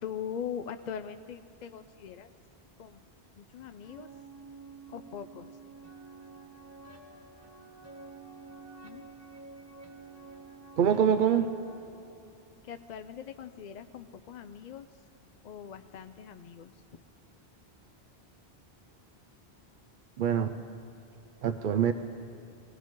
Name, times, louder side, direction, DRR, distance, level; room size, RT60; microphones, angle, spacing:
voice 1, 0.0-2.3 2.8-3.0 3.4-4.1 4.9-5.5 8.8-9.0 12.6-14.9 15.4-16.7, left 8 dB, 55° left, 9 dB, 0.5 m, -41 dB
sound 1, 3.8-11.8, right 4 dB, 15° right, 1.4 m, -50 dB
voice 2, 10.8-11.5 20.2-20.6 21.4-21.9, right 8 dB, 60° right, 8 dB, 0.6 m, -24 dB
22.0 x 18.0 x 3.7 m, 2.7 s
omnidirectional pair, 1.0 m